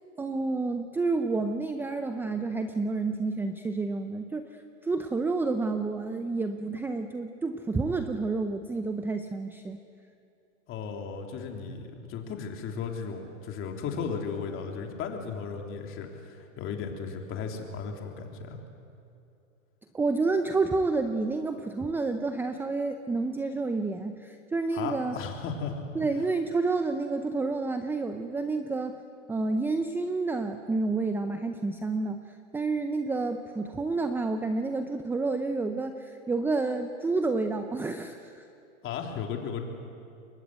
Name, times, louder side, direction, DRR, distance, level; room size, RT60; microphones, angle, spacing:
voice 1, 0.2-9.8 19.9-25.2 25.9-29.0 29.3-38.5, right 3 dB, 5° right, 8 dB, 0.6 m, -29 dB
voice 2, 10.7-18.6 24.7-25.8 38.8-39.7, left 6 dB, 30° left, 3 dB, 3.6 m, -35 dB
29.0 x 22.5 x 8.2 m, 2.7 s
hypercardioid pair, 130°, 41 cm